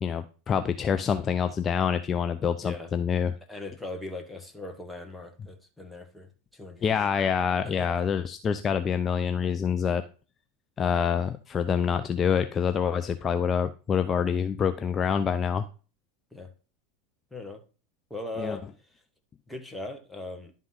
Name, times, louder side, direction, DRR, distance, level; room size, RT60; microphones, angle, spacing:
voice 1, 0.0-3.3 6.8-10.0 10.8-15.7 18.4-18.6, left 7 dB, 30° left, 0.5 m, -26 dB
voice 2, 2.6-2.9 3.5-7.1 7.6-7.9 16.3-16.5 17.3-17.6 18.1-18.6 19.5-20.5, left 2 dB, 5° left, 1.4 m, -39 dB
11.0 x 3.7 x 4.1 m
hypercardioid pair, 90°, 0 cm